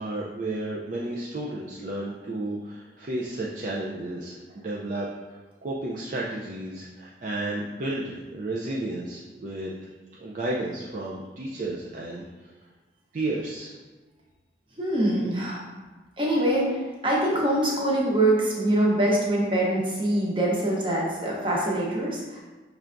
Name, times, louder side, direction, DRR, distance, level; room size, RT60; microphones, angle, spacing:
voice 1, 0.0-9.7 10.2-12.2 13.1-13.7, right 2 dB, 45° right, -4 dB, 0.4 m, -32 dB
voice 2, 14.8-15.6 16.2-22.4, right 1 dB, 30° right, -4 dB, 0.9 m, -24 dB
5.8 x 3.3 x 2.5 m, 1.3 s
head